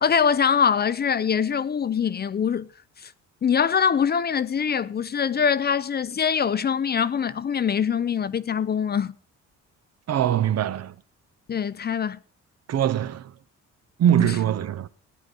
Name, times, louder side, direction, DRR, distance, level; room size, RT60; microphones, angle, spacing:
voice 1, 0.0-2.7 3.0-3.1 3.4-9.1 11.5-12.2 14.2-14.3, left 7 dB, 35° left, 0.5 m, -23 dB
voice 2, 10.1-11.0 12.7-13.3 14.0-14.9, right 10 dB, 55° right, 0.7 m, -22 dB
16.0 x 9.6 x 4.0 m
cardioid pair, 90°, 30 cm